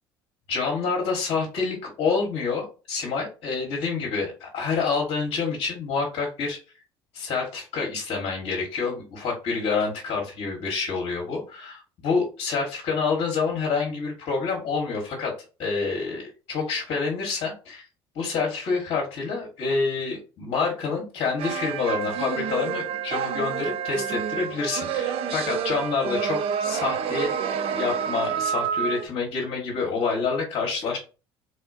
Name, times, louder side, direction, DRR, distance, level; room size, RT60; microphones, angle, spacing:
voice 1, 0.5-6.6 7.1-15.3 15.6-17.8 18.1-27.4 27.7-31.0, left 4 dB, 55° left, -2 dB, 1.0 m, -27 dB
sound 1, 21.4-29.1, right 7 dB, 50° right, 0.4 m, -28 dB
3.4 x 2.1 x 2.5 m, 0.33 s
hypercardioid pair, 60°, 13 cm